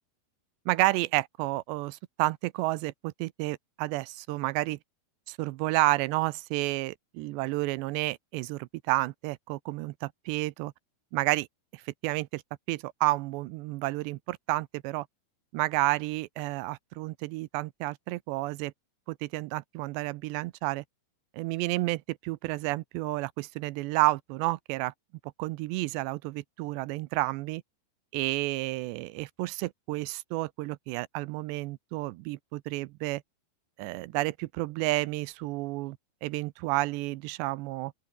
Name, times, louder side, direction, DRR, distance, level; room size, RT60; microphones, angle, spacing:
voice 1, 0.7-4.8 5.3-10.7 11.1-11.5 11.7-12.4 12.7-15.1 15.5-18.7 19.1-20.8 21.3-24.9 25.4-27.6 28.1-33.2 33.8-37.9, right 20 dB, 85° right, 2.8 m, -30 dB
open air
omnidirectional pair, 5.1 m